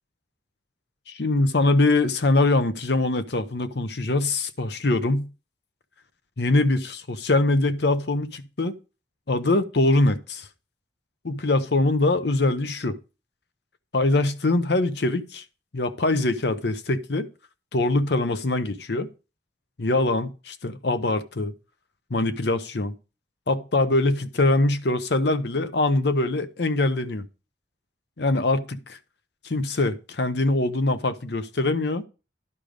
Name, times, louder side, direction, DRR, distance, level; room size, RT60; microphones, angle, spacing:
voice 1, 1.1-5.3 6.4-8.7 9.3-10.5 11.2-13.0 13.9-15.4 15.7-17.3 17.7-19.1 19.8-21.5 22.1-22.9 23.5-27.3 28.2-29.0 29.4-32.0, left 2 dB, 60° left, 0.8 m, -23 dB
11.0 x 5.0 x 5.1 m
head